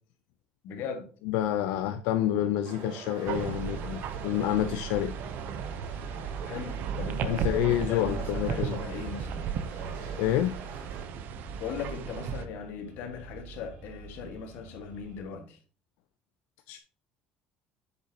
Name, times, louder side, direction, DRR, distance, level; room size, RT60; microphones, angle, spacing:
voice 1, 0.6-1.1 6.5-9.5 11.6-15.6, left 6 dB, 70° left, 1.8 m, -39 dB
voice 2, 1.2-5.2 7.2-8.8 9.7-10.6 16.7-16.8, left 12 dB, 90° left, 0.6 m, -28 dB
sound 1, 2.6-11.0, right 4 dB, 80° right, 3.3 m, -45 dB
sound 2, 2.7-15.3, right 3 dB, 40° right, 2.9 m, -51 dB
sound 3, 3.3-12.5, right 7 dB, 60° right, 0.8 m, -35 dB
8.2 x 6.6 x 2.9 m
cardioid pair, 145°, 4 cm